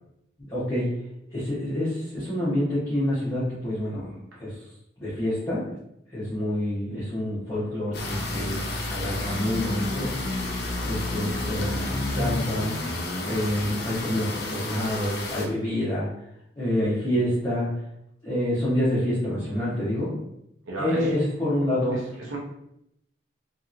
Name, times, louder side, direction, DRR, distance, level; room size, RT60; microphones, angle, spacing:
voice 1, 0.4-0.9 1.3-4.1 4.4-4.5 5.0-5.6 6.1-10.1 10.8-12.7 13.2-16.1 16.6-17.7 18.2-20.2 20.8-22.0, left 1 dB, 20° left, -11 dB, 0.8 m, -27 dB
sound 1, 7.9-15.5, left 2 dB, 55° left, 0.6 m, -30 dB
voice 2, 20.7-21.1 21.9-22.4, right 2 dB, 85° right, -2 dB, 0.7 m, -34 dB
2.9 x 2.8 x 2.5 m, 0.78 s
head